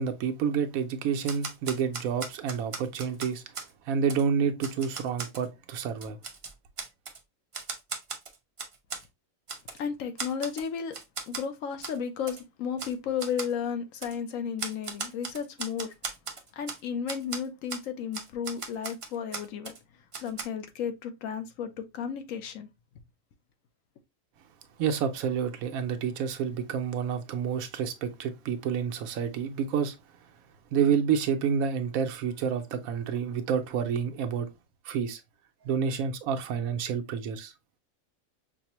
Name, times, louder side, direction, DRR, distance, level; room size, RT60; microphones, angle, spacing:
voice 1, 0.0-3.4 3.9-6.2 24.8-30.0 30.7-34.5 34.8-35.2 35.6-37.5, right 7 dB, 90° right, 1.1 m, -29 dB
Typewriter, 1.2-3.7 4.1-4.2 4.6-5.5 5.9-7.2 7.5-9.0 9.5-9.8 10.2-10.7 10.9-11.5 11.8-12.0 12.3-12.4 12.8-12.9 13.2-13.5 14.0-14.2 14.6-16.8 17.1-17.4 17.7-17.9 18.1-19.8 20.1-20.4, right 4 dB, 55° right, 0.3 m, -37 dB
voice 2, 9.8-10.9 11.3-15.9 16.6-19.7 20.2-22.7, left 7 dB, 80° left, 1.0 m, -33 dB
5.7 x 2.0 x 2.9 m
omnidirectional pair, 1.4 m